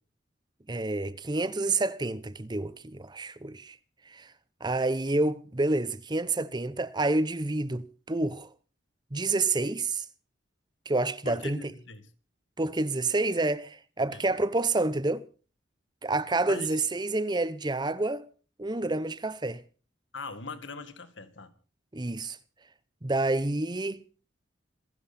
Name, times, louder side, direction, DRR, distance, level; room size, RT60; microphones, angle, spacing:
voice 1, 0.7-3.7 4.1-4.3 4.6-8.5 9.1-10.0 10.9-11.6 12.6-15.2 16.0-18.3 18.6-19.6 21.9-22.4 23.0-24.0, right 2 dB, 20° right, 0.7 m, -28 dB
voice 2, 11.3-12.1 14.1-14.2 16.5-16.8 20.1-21.5, left 3 dB, 75° left, 1.9 m, -41 dB
27.0 x 11.0 x 4.2 m
head